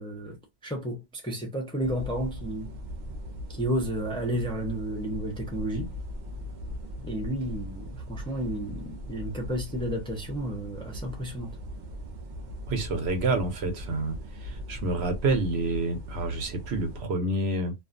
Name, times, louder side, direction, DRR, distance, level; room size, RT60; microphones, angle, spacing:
voice 1, 0.0-2.7 3.5-5.9 7.0-11.6, right 1 dB, 5° left, 0.4 m, -32 dB
sound 1, 1.8-17.0, left 1 dB, 55° right, 0.6 m, -39 dB
voice 2, 12.7-14.1 14.4-17.7, right 2 dB, 80° right, 1.0 m, -28 dB
2.4 x 2.2 x 2.5 m
omnidirectional pair, 1.1 m